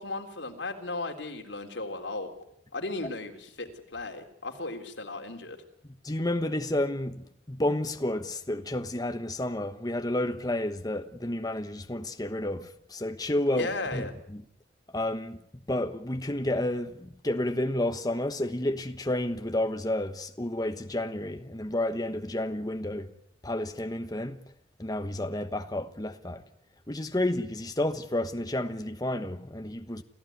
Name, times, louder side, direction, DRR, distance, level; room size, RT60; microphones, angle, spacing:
voice 1, 0.0-2.3 2.7-5.6 13.4-14.1, left 2 dB, 85° left, 3.7 m, -36 dB
voice 2, 6.0-14.4 14.9-15.4 15.7-23.1 23.4-24.4 24.8-26.4 26.9-30.0, left 1 dB, 20° left, 1.2 m, -31 dB
29.0 x 15.5 x 9.6 m
head